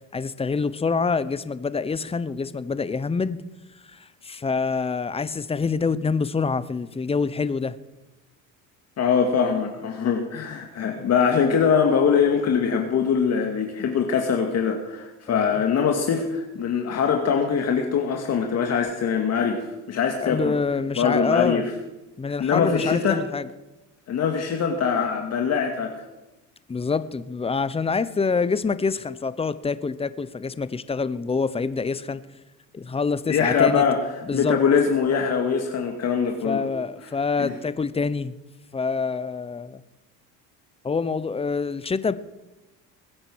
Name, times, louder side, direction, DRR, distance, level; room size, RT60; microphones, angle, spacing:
voice 1, 0.1-3.4 3.9-7.8 15.3-15.5 20.2-21.6 22.2-23.5 26.7-32.2 32.7-33.8 34.2-34.6 36.4-38.3 38.7-39.8 40.8-42.1, left 4 dB, 15° left, 15 dB, 0.8 m, -26 dB
voice 2, 9.0-20.5 21.0-21.6 22.4-23.2 24.1-25.9 33.3-34.0 34.3-36.7 37.4-37.5, left 6 dB, 45° left, 3 dB, 2.2 m, -22 dB
21.5 x 8.9 x 6.3 m, 1.0 s
supercardioid pair, 105°, 35 cm